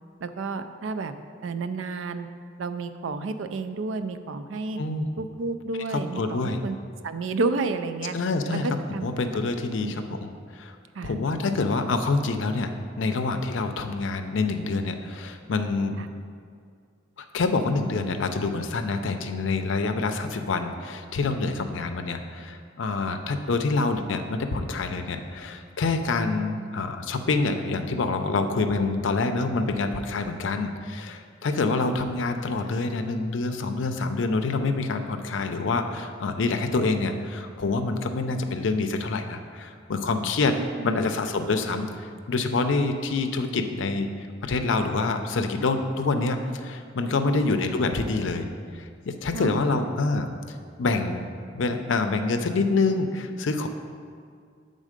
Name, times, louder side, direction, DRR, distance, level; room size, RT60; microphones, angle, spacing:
voice 1, 0.2-1.1 1.4-2.3 2.6-4.8 5.2-6.7 7.0-8.2 8.5-9.1 9.8-9.9 11.0-11.2 16.0-16.1 23.1-23.2 26.6-26.7 31.7-31.8 40.2-40.3 40.8-40.9 47.2-47.5 49.3-49.5 51.9-52.1, right 3 dB, 85° right, 10 dB, 0.4 m, -31 dB
voice 2, 5.9-6.6 8.1-8.7 9.0-10.8 11.0-16.0 17.3-40.5 40.8-41.9 42.3-44.1 44.4-48.5 48.7-51.3 51.5-53.7, left 3 dB, 75° left, 7 dB, 0.5 m, -26 dB
7.4 x 3.8 x 5.0 m, 2.2 s
head